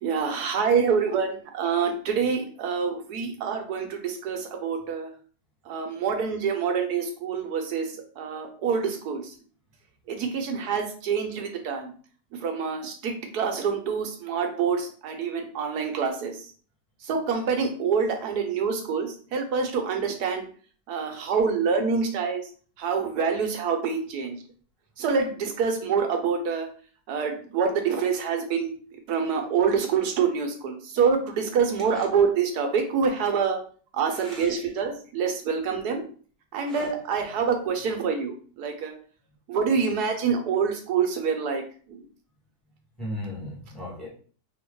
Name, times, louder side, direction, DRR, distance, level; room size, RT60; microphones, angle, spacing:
voice 1, 0.0-5.1 5.7-9.3 10.1-11.9 12.4-16.4 17.0-20.5 20.9-22.4 22.8-24.4 25.0-26.7 27.1-28.7 29.1-33.6 33.9-36.0 36.5-38.9 39.5-41.6 41.9-42.0, right 6 dB, 80° right, 4 dB, 1.3 m, -26 dB
voice 2, 34.1-34.7 36.6-36.9 43.0-44.1, left 1 dB, ahead, -5 dB, 1.2 m, -37 dB
3.0 x 2.7 x 3.7 m, 0.43 s
omnidirectional pair, 1.7 m